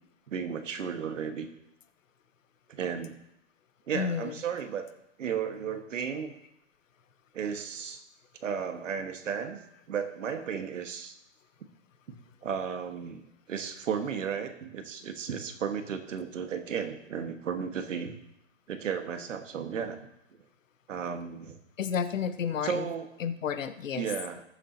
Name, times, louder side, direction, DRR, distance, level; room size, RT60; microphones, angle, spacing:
voice 1, 0.3-1.5 2.7-3.2 3.9-4.9 5.2-6.3 7.3-8.0 8.4-9.6 9.9-11.1 12.1-13.2 13.5-18.1 18.7-20.1 20.9-21.6 22.6-23.1 24.0-24.4, right 7 dB, 80° right, 7 dB, 1.5 m, -34 dB
voice 2, 3.9-4.3 21.8-22.9 23.2-24.1, left 7 dB, 90° left, 11 dB, 1.0 m, -31 dB
19.0 x 7.3 x 2.8 m, 0.82 s
hypercardioid pair, 170°, 38 cm